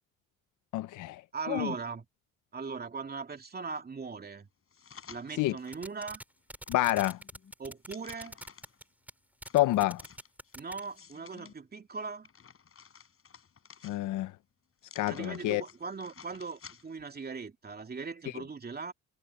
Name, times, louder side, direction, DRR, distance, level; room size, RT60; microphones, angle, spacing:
voice 1, 0.7-1.2 1.5-1.7 5.4-5.5 6.7-7.2 9.5-10.0 13.8-14.3 15.0-15.6, left 16 dB, 80° left, 0.6 m, -28 dB
voice 2, 1.3-2.1 2.5-4.5 5.1-6.2 7.6-8.4 10.5-12.3 15.1-18.9, right 4 dB, 30° right, 2.6 m, -39 dB
sound 1, 4.7-5.8 6.3-8.8 9.4-11.5 12.0-14.3 14.8-17.1 17.5-17.6, left 7 dB, 45° left, 6.3 m, -54 dB
sound 2, 5.6-6.2 6.5-8.8 9.1-9.2 9.4-10.8, right 1 dB, 5° right, 6.4 m, -44 dB
cardioid pair, 90°, 30 cm